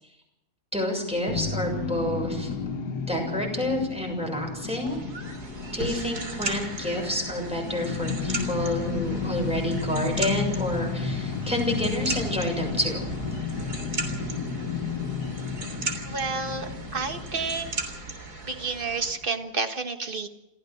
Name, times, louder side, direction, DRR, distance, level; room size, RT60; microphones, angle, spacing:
voice 1, 0.7-2.5 3.1-5.0 5.7-13.0, left 1 dB, 5° right, 1 dB, 7.0 m, -29 dB
sound 1, 1.3-18.5, left 5 dB, 80° left, 1.7 m, -32 dB
sound 2, 4.9-19.1, right 3 dB, 75° right, 3.9 m, -37 dB
voice 2, 16.0-17.7 18.5-20.3, right 4 dB, 35° right, 6 dB, 1.7 m, -30 dB
28.0 x 15.0 x 6.5 m, 0.90 s
omnidirectional pair, 1.7 m